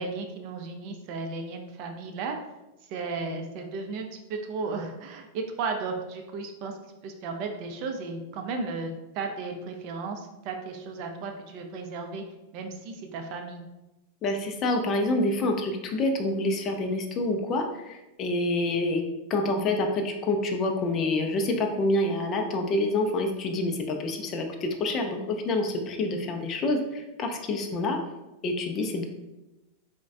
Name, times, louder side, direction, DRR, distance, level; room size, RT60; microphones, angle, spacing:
voice 1, 0.0-2.4 2.9-6.7 7.0-10.2 10.5-12.2 12.5-13.6, right 4 dB, 45° right, 4 dB, 0.4 m, -34 dB
voice 2, 14.2-19.0 19.3-28.0 28.4-29.0, left 2 dB, 30° left, 4 dB, 0.4 m, -27 dB
3.9 x 2.1 x 2.4 m, 1.0 s
figure-of-eight pair, 90°, 0 cm